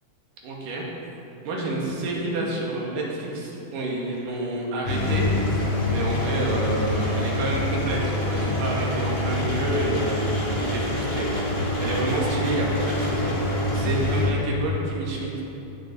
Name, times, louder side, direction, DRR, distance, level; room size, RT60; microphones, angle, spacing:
voice 1, 0.4-0.9 1.4-5.3 5.5-15.4, right 1 dB, 85° right, -3 dB, 3.4 m, -29 dB
Engine, 4.9-14.3, left 1 dB, 30° left, 1.2 m, -25 dB
17.5 x 7.2 x 4.3 m, 3.0 s
omnidirectional pair, 3.8 m